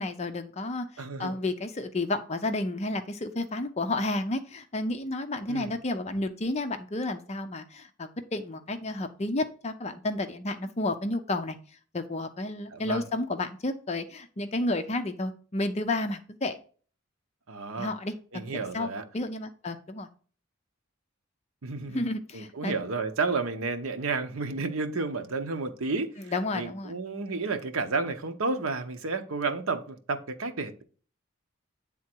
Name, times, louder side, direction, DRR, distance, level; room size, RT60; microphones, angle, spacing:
voice 1, 0.0-11.6 11.9-16.6 17.8-18.1 18.5-18.9 19.1-20.1 21.9-22.7 26.3-27.0, left 2 dB, 30° left, 0.5 m, -31 dB
voice 2, 1.0-1.3 5.5-5.7 12.7-13.0 17.5-17.9 18.3-19.1 21.6-22.0 22.3-30.8, right 4 dB, 80° right, 0.9 m, -31 dB
8.5 x 3.7 x 4.5 m
head